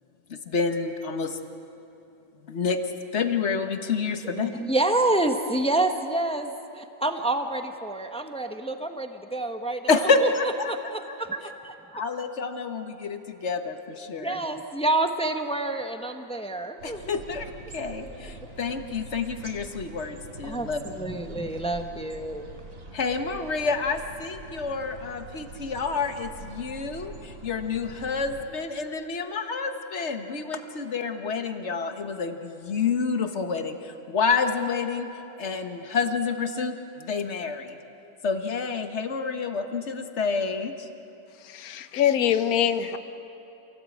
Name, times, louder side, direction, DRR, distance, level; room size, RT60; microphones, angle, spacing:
voice 1, 0.3-1.4 2.4-2.8 3.1-4.5 9.9-10.7 11.4-11.5 11.9-14.4 16.8-20.8 22.9-35.1 35.4-37.7 38.2-40.9, left 4 dB, 40° left, 7 dB, 1.4 m, -28 dB
voice 2, 4.2-12.0 14.1-17.2 17.8-18.0 18.3-18.4 20.4-22.5, right 2 dB, 5° left, 6 dB, 0.6 m, -28 dB
sound 1, 16.8-28.5, right 3 dB, 45° right, 2.3 m, -44 dB
voice 3, 41.4-43.0, left 9 dB, 55° left, 10 dB, 1.3 m, -24 dB
27.5 x 17.5 x 8.5 m, 2.9 s
omnidirectional pair, 2.1 m